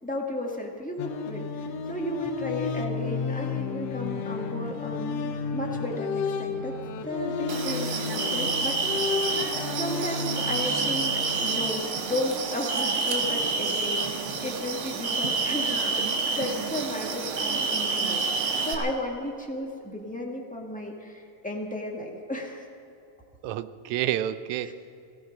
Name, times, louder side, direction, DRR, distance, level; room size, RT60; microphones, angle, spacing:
voice 1, 0.0-6.7 7.0-9.2 9.7-22.7 24.6-24.7, left 1 dB, 5° left, -1 dB, 0.9 m, -34 dB
sound 1, 1.0-11.6, left 5 dB, 70° left, 1.8 m, -32 dB
sound 2, 7.5-18.7, right 4 dB, 55° right, 1.8 m, -28 dB
voice 2, 23.4-24.7, right 12 dB, 80° right, 14 dB, 1.9 m, -30 dB
18.0 x 15.5 x 5.3 m, 2.6 s
omnidirectional pair, 3.3 m